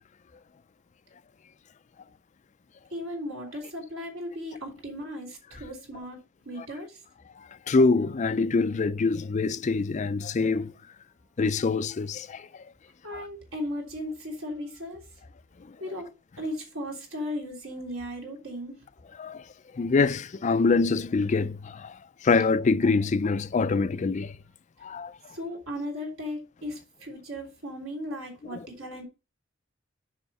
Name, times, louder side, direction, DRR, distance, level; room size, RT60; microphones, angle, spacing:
voice 1, 2.9-7.0 13.0-15.1 15.8-18.9 25.3-29.1, left 1 dB, 75° right, 3.4 m, -36 dB
voice 2, 7.4-10.7 11.4-12.6 13.1-13.3 19.2-19.4 19.7-24.4 24.8-25.2 28.5-28.7, left 4 dB, 35° left, 0.4 m, -25 dB
7.3 x 5.5 x 5.5 m
head